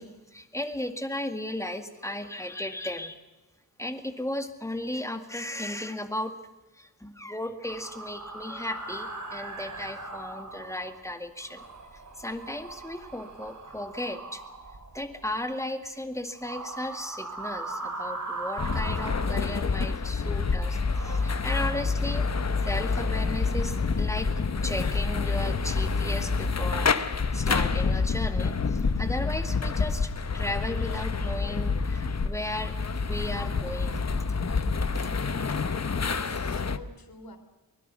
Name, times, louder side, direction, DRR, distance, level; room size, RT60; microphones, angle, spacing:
voice 1, 0.0-3.2 3.8-6.3 6.8-11.6 12.2-14.4 14.9-22.3 22.7-24.3 24.6-32.7 33.0-34.0 34.5-34.6, left 1 dB, 10° left, 7 dB, 2.1 m, -35 dB
sound 1, 7.6-11.1 11.4-15.4 16.3-19.9 20.4-21.4, right 3 dB, 50° right, 3.3 m, -40 dB
sound 2, 18.6-36.8, left 4 dB, 45° left, 1.1 m, -27 dB
voice 2, 35.9-37.4, left 2 dB, 70° left, 6 dB, 3.5 m, -47 dB
23.5 x 21.5 x 6.3 m, 1.1 s
wide cardioid pair, 115°, 37 cm